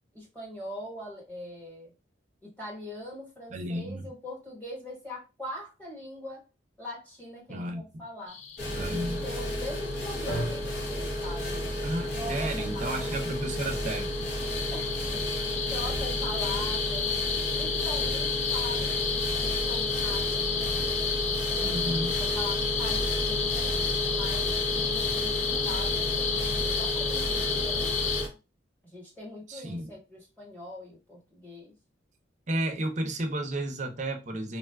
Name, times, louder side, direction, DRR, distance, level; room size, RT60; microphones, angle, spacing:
voice 1, 0.1-1.9 2.4-6.4 6.8-8.4 8.9-13.4 14.7-17.1 17.5-20.8 21.5-28.4 28.8-31.7, left 1 dB, 10° left, 1.1 m, -42 dB
voice 2, 3.5-4.1 7.5-7.8 8.7-9.2 11.8-14.1 21.6-22.2 24.8-24.9 29.5-29.9 32.5-34.6, right 1 dB, 40° right, 0.5 m, -32 dB
sound 1, 8.3-28.2, left 6 dB, 35° left, 0.3 m, -32 dB
sound 2, 8.6-28.3, equal, 55° left, 0.7 m, -32 dB
sound 3, 10.3-18.5, right 1 dB, 80° left, 1.0 m, -44 dB
3.5 x 2.3 x 2.2 m
head